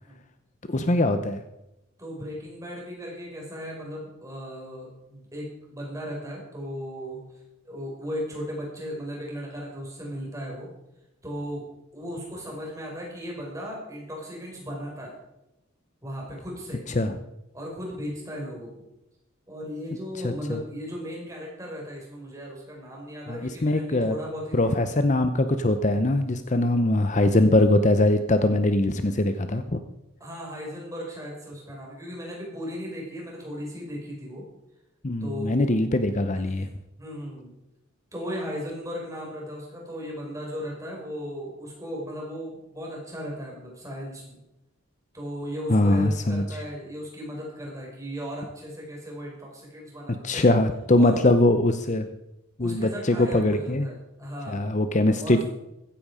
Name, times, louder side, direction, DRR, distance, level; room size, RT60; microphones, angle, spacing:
voice 1, 0.7-1.4 17.0-17.2 20.2-20.6 23.3-24.1 24.5-29.8 35.0-36.7 45.7-46.4 50.2-52.1 52.6-53.9 54.5-55.4, left 1 dB, 35° left, 9 dB, 0.8 m, -22 dB
voice 2, 2.0-10.7 11.2-15.1 16.0-16.8 17.5-18.8 19.5-24.9 30.2-34.4 35.2-35.8 36.3-37.5 38.1-44.4 45.1-50.5 50.9-51.2 52.6-54.8 55.2-55.4, equal, 15° right, -2 dB, 5.8 m, -36 dB
16.0 x 14.5 x 5.0 m, 0.90 s
head